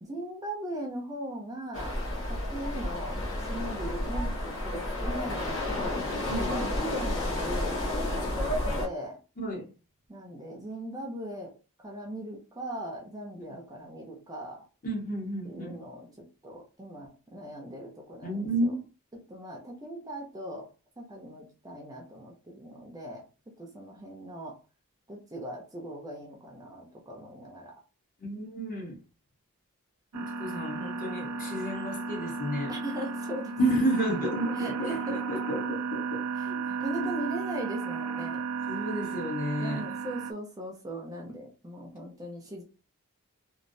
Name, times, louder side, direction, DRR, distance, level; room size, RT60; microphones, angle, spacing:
voice 1, 0.0-2.0 2.3-6.0 6.5-8.5 8.8-9.2 10.1-11.5 11.8-14.6 15.4-18.7 19.3-20.7 21.0-23.3 23.6-24.5 25.1-27.7 32.7-33.5 34.6-35.2 36.4-38.4 39.6-42.6, right 1 dB, 15° right, 0.6 m, -39 dB
sound 1, 1.7-8.9, left 1 dB, 60° left, 1.0 m, -31 dB
voice 2, 9.4-9.7 14.8-15.8 18.2-18.8 28.2-29.0 30.1-32.7 33.6-36.6 37.0-37.1 38.7-39.9, right 1 dB, 40° left, 1.0 m, -31 dB
sound 2, 30.1-40.3, right 5 dB, 80° right, 0.4 m, -34 dB
3.1 x 2.5 x 2.6 m
head